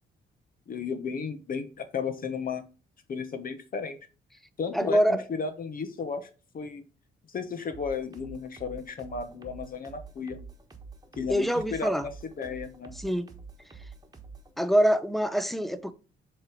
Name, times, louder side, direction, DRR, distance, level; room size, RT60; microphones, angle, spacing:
voice 1, 0.7-2.6 3.1-4.0 4.6-6.3 6.5-6.8 7.3-10.4 11.2-12.9, left 5 dB, 45° left, 1.0 m, -34 dB
voice 2, 4.7-5.2 11.3-12.1 13.0-13.3 14.6-15.9, equal, ahead, 0.6 m, -25 dB
sound 1, 7.7-14.5, right 4 dB, 20° right, 1.3 m, -47 dB
7.7 x 3.1 x 4.9 m
cardioid pair, 90°, 20 cm